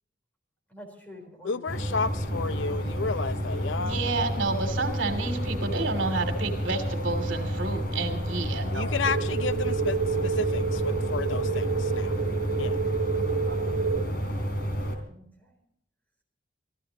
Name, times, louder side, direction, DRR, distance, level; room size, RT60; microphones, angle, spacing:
voice 1, 0.7-2.3 15.1-15.6, equal, 10° left, 4.0 m, -49 dB
voice 2, 1.4-4.0 8.7-12.2 12.6-12.8, left 4 dB, 70° left, 0.6 m, -32 dB
sound 1, 1.7-14.9, equal, 50° left, 3.6 m, -30 dB
voice 3, 3.8-8.9 13.5-13.8, right 3 dB, 75° right, 2.7 m, -30 dB
sound 2, 9.0-14.0, right 6 dB, 50° right, 1.3 m, -29 dB
25.5 x 15.0 x 2.9 m
head